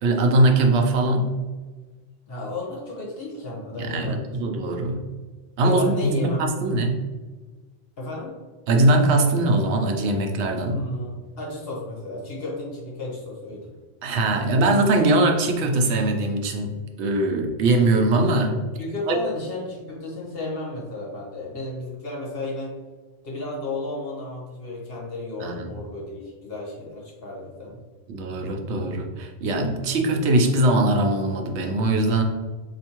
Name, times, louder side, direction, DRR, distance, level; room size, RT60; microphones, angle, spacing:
voice 1, 0.0-1.4 3.8-5.0 5.6-7.0 8.7-10.8 14.0-16.7 17.0-18.6 19.1-19.2 25.4-25.7 28.1-32.2, right 2 dB, 85° right, 3 dB, 0.9 m, -21 dB
voice 2, 2.3-4.4 5.6-6.5 8.0-8.3 10.6-13.7 18.8-22.7 23.2-27.8, left 2 dB, 60° left, -4 dB, 1.3 m, -33 dB
4.3 x 2.8 x 2.9 m, 1.4 s
omnidirectional pair, 1.1 m